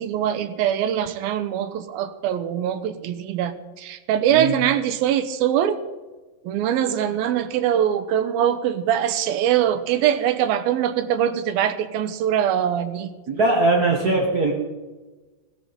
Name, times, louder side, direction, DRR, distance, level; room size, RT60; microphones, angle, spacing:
voice 1, 0.0-5.8 6.4-13.1, right 10 dB, 85° right, 10 dB, 2.6 m, -22 dB
voice 2, 4.3-4.6 13.3-14.5, right 2 dB, 60° right, -1 dB, 1.0 m, -20 dB
16.5 x 14.5 x 4.2 m, 1.2 s
omnidirectional pair, 4.2 m